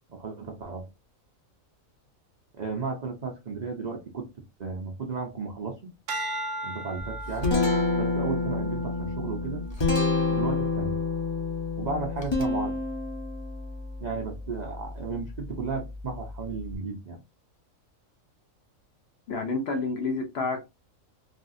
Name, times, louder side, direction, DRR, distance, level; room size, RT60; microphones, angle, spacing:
voice 1, 0.1-0.9 2.5-4.3 4.6-5.9 6.6-7.6 8.0-9.7 10.3-11.0 11.8-12.8 14.0-17.2, right 4 dB, 55° right, 0.4 m, -34 dB
sound 1, 6.1-10.5 11.1-11.5, right 1 dB, 75° right, 1.0 m, -38 dB
Guitar, 7.0-16.7, left 3 dB, 30° left, 0.6 m, -29 dB
voice 2, 19.3-20.7, left 3 dB, 60° left, 0.8 m, -29 dB
3.4 x 2.3 x 2.5 m
omnidirectional pair, 1.4 m